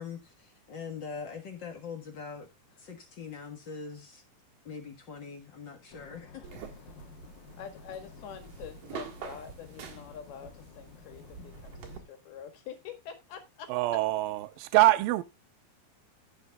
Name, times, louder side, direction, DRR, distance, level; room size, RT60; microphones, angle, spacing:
voice 1, 0.0-2.5 2.8-4.2 4.6-6.4, left 6 dB, 50° left, 1.3 m, -42 dB
sound 1, 5.9-12.0, left 6 dB, 70° left, 3.1 m, -52 dB
sound 2, 6.4-12.0, right 7 dB, 50° right, 2.3 m, -46 dB
voice 2, 7.6-13.7, left 7 dB, 90° left, 3.7 m, -45 dB
voice 3, 13.7-15.2, right 17 dB, 80° right, 2.3 m, -24 dB
16.0 x 7.0 x 2.3 m
omnidirectional pair, 4.3 m